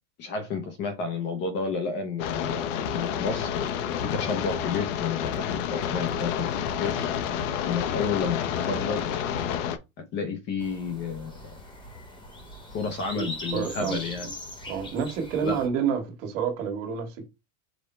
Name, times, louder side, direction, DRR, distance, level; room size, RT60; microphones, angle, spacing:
voice 1, 0.2-2.6 3.0-3.5 4.0-6.5 6.8-7.1 7.7-8.4 8.7-9.0 10.1-11.5 12.7-14.3 15.4-15.6, left 5 dB, 30° left, 0.5 m, -31 dB
sound 1, 2.2-9.8, left 8 dB, 65° left, 0.7 m, -29 dB
sound 2, 10.6-15.7, left 1 dB, 10° left, 0.9 m, -41 dB
voice 2, 13.1-14.0 14.6-17.3, right 7 dB, 65° right, 1.6 m, -29 dB
5.1 x 2.1 x 4.2 m
supercardioid pair, 170°, 40 cm